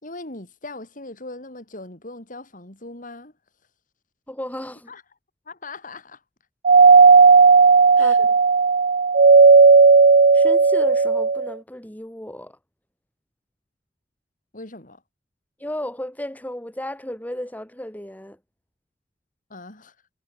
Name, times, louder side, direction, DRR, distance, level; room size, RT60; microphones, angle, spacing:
voice 1, 0.0-3.3 4.9-5.0 5.5-6.2 8.0-8.3 14.5-15.0 19.5-19.9, left 2 dB, 50° left, 5.8 m, -39 dB
voice 2, 4.3-4.9 8.0-8.1 10.3-12.6 15.6-18.4, left 1 dB, 10° left, 2.8 m, -33 dB
Doorbell, 6.7-11.5, right 4 dB, 50° right, 0.7 m, -13 dB
head